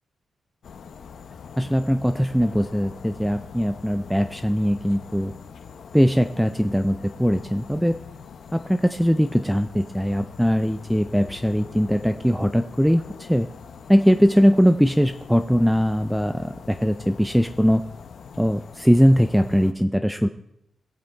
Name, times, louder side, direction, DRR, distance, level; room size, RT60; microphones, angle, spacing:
sound 1, 0.6-19.7, left 6 dB, 60° left, 0.8 m, -43 dB
voice 1, 1.6-5.3 5.9-8.0 8.5-13.0 13.3-13.5 13.9-17.8 18.4-20.3, equal, ahead, 7 dB, 0.4 m, -20 dB
21.0 x 7.6 x 4.4 m, 0.81 s
wide cardioid pair, 165°, 0 cm